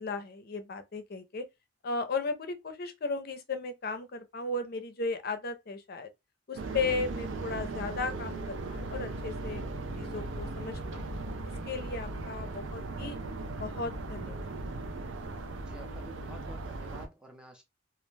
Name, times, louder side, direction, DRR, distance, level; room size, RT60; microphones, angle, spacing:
voice 1, 0.0-1.5 1.8-6.1 6.5-9.6 10.0-11.1 11.7-13.2 13.5-14.5, left 3 dB, 55° left, 0.5 m, -35 dB
sound 1, 6.6-17.1, right 2 dB, 80° right, 0.5 m, -38 dB
voice 2, 15.6-17.6, right 1 dB, 5° right, 0.5 m, -50 dB
2.4 x 2.1 x 3.1 m
head